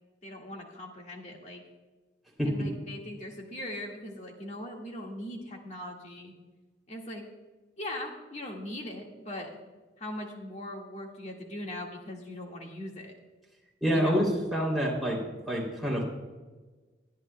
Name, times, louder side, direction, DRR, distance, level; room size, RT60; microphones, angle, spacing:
voice 1, 0.2-1.6 2.5-6.3 6.9-7.2 7.8-9.5 10.0-13.1 13.9-14.3, left 1 dB, 35° left, 1 dB, 1.8 m, -40 dB
voice 2, 13.8-15.2 15.5-16.0, equal, ahead, -4 dB, 2.9 m, -27 dB
20.5 x 10.5 x 2.2 m, 1.3 s
head